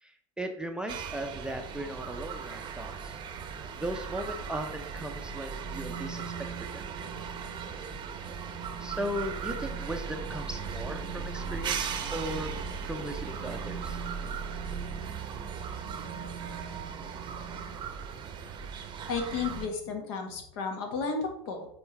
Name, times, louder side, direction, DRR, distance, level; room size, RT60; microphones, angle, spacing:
voice 1, 0.0-3.2 3.8-6.3 6.6-6.8 8.8-12.5 12.8-14.0, right 1 dB, 5° right, 3 dB, 0.7 m, -37 dB
sound 1, 0.9-19.7, right 6 dB, 30° right, 0.8 m, -37 dB
voice 2, 19.1-21.7, left 4 dB, 60° left, 3 dB, 1.7 m, -33 dB
7.0 x 4.6 x 3.3 m, 0.71 s
hypercardioid pair, 95°, 16 cm